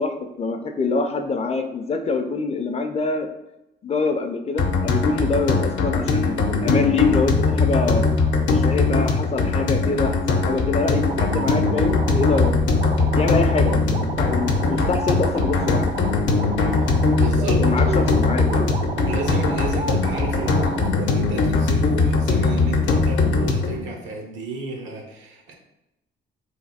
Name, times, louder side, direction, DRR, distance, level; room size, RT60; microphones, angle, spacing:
voice 1, 0.0-3.3 3.8-8.1 8.5-12.6 13.1-15.9 17.6-18.7, left 4 dB, 30° left, 6 dB, 0.5 m, -25 dB
sound 1, 4.6-23.8, left 4 dB, 70° left, 0.7 m, -21 dB
sound 2, 11.1-21.1, right 5 dB, 30° right, 0.4 m, -31 dB
voice 2, 16.7-18.3 19.0-25.5, right 3 dB, 85° right, 2 dB, 0.9 m, -32 dB
3.3 x 2.6 x 4.1 m, 0.89 s
cardioid pair, 90°, 20 cm